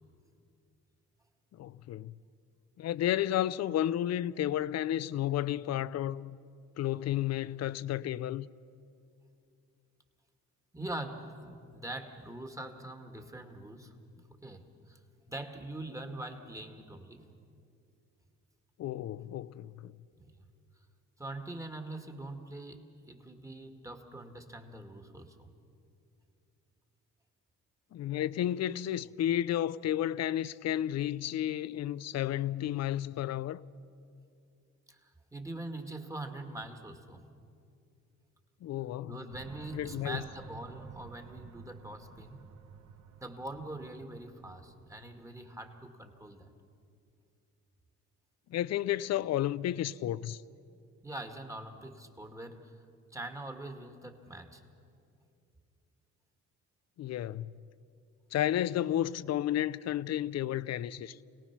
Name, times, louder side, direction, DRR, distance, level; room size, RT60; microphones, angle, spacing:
voice 1, 1.6-2.1 2.8-6.4 6.8-8.5 18.8-19.9 27.9-33.6 38.6-39.2 39.7-40.2 48.5-50.4 57.0-57.6 58.3-61.2, left 12 dB, 60° left, 0.5 m, -32 dB
voice 2, 10.7-15.0 15.3-17.2 20.2-20.5 21.2-25.5 34.9-37.2 39.1-42.5 43.2-46.5 51.0-52.8 53.1-54.6, right 2 dB, 10° right, 2.0 m, -43 dB
sound 1, 39.3-45.6, right 6 dB, 65° right, 1.1 m, -52 dB
27.5 x 18.0 x 6.0 m
cardioid pair, 90°, 30 cm